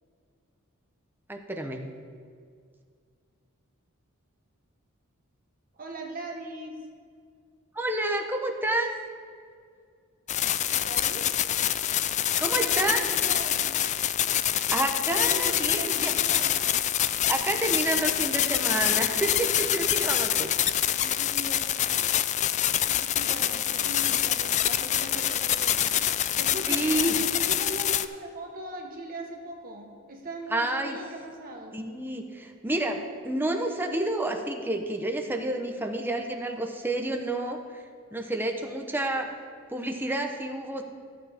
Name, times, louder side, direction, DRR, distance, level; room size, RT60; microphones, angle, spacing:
voice 1, 1.3-1.8 7.7-8.9 12.4-13.0 14.3-16.1 17.3-20.5 21.0-21.2 26.7-27.2 30.5-31.0 31.7-37.8 38.1-39.3 39.7-40.8, right 1 dB, 10° right, 3 dB, 0.9 m, -29 dB
voice 2, 5.7-6.8 10.8-11.3 12.5-13.7 15.1-16.6 21.2-21.8 22.8-25.9 26.4-31.8, right 2 dB, 45° right, 1 dB, 1.3 m, -40 dB
sound 1, 10.3-28.1, left 11 dB, 35° left, 0.3 m, -26 dB
14.0 x 8.7 x 3.6 m, 2.1 s
head